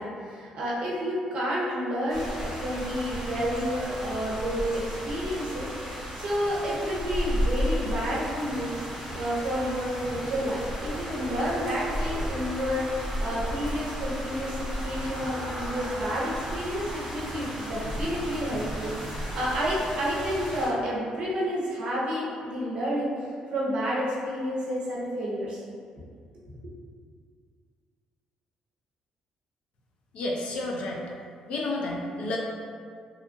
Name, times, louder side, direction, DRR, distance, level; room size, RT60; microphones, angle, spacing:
voice 1, 0.0-8.7 9.1-12.8 13.2-23.1 23.5-25.6 25.9-26.0 26.5-26.6, equal, 50° right, -6 dB, 0.6 m, -30 dB
sound 1, 2.1-20.7, equal, 15° right, 0.8 m, -34 dB
voice 2, 30.1-31.0 31.5-32.4, left 2 dB, 60° left, -1 dB, 0.4 m, -30 dB
2.7 x 2.4 x 2.5 m, 2.2 s
cardioid pair, 170°, 2 cm